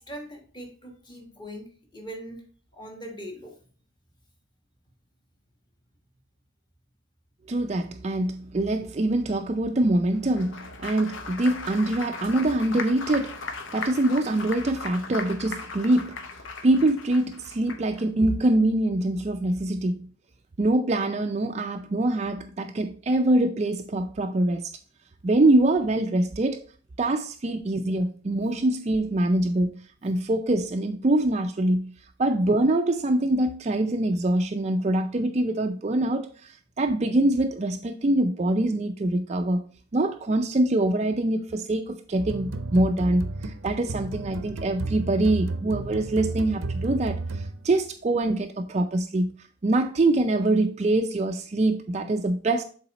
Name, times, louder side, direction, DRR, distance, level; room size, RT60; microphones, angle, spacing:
voice 1, 0.0-2.4 2.7-3.6 27.5-27.6 30.0-30.2, equal, 20° left, 1.3 m, -41 dB
voice 2, 7.5-13.4 13.7-16.2 16.6-20.1 20.6-24.7 25.2-26.6 27.0-39.6 39.9-49.4 49.6-52.6, right 1 dB, 30° right, 0.4 m, -24 dB
Applause, 10.2-18.0, left 4 dB, 65° left, 0.8 m, -38 dB
sound 1, 42.2-47.9, right 2 dB, 75° right, 0.6 m, -32 dB
7.0 x 4.0 x 4.0 m
head